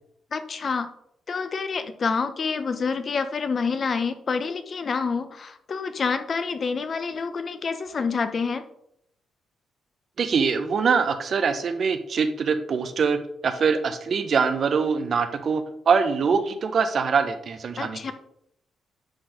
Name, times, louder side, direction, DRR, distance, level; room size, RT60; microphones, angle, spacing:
voice 1, 0.3-0.9 1.3-8.7 17.8-18.1, left 5 dB, 50° left, 10 dB, 0.9 m, -27 dB
voice 2, 10.2-18.1, right 5 dB, 60° right, 9 dB, 1.0 m, -23 dB
10.0 x 4.1 x 5.1 m, 0.74 s
supercardioid pair, 55°, 0 cm